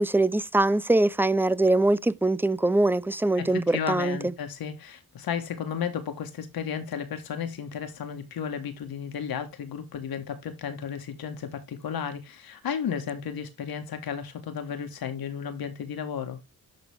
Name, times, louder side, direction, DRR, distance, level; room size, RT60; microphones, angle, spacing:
voice 1, 0.0-4.3, right 2 dB, 5° right, 0.4 m, -23 dB
voice 2, 3.4-16.4, left 7 dB, 80° left, 1.8 m, -33 dB
11.0 x 4.0 x 3.5 m
cardioid pair, 80°, 36 cm